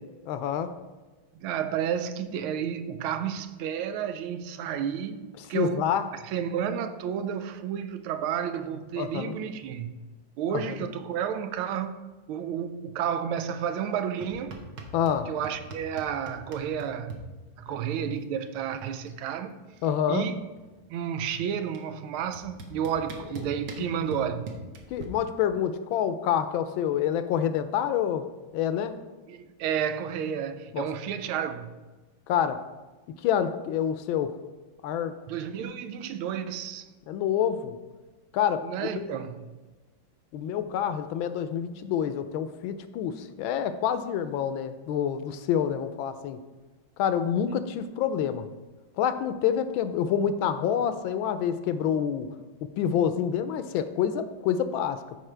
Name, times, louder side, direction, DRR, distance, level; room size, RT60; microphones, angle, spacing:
voice 1, 0.3-0.7 5.5-6.0 9.0-9.4 10.5-10.8 14.9-15.3 19.8-20.3 24.9-28.3 28.5-29.0 30.7-30.8 32.3-32.7 33.2-34.4 34.8-35.2 37.1-37.8 38.3-39.1 40.3-46.4 47.0-48.5 49.0-52.3 52.8-55.2, left 9 dB, 80° left, 1.3 m, -27 dB
voice 2, 1.3-5.2 5.5-5.8 6.1-9.9 10.4-14.6 15.3-17.2 17.6-19.6 20.1-20.4 20.9-24.5 29.3-31.7 35.3-36.9 38.6-39.5, right 8 dB, 90° right, 1.5 m, -31 dB
sound 1, 14.2-15.2 15.4-17.2 18.5-18.6 18.8-19.2 19.5-20.9 21.7-21.8 22.3-25.0, right 3 dB, 65° right, 1.5 m, -42 dB
13.5 x 5.0 x 3.3 m
omnidirectional pair, 2.2 m